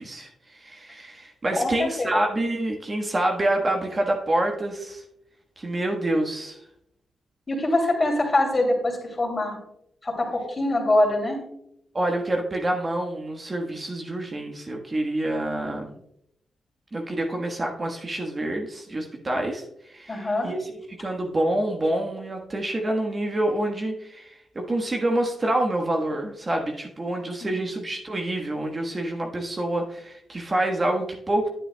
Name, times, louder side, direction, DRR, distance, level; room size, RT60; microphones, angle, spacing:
voice 1, 0.0-5.0 5.6-6.6 11.9-16.0 16.9-20.7 21.0-31.5, right 1 dB, 35° right, 1 dB, 1.3 m, -27 dB
voice 2, 1.6-2.1 7.5-9.6 10.0-11.4 20.1-20.5 27.4-27.6, left 1 dB, 35° left, 1 dB, 2.9 m, -24 dB
9.8 x 8.5 x 2.3 m, 0.76 s
cardioid pair, 65°, 0 cm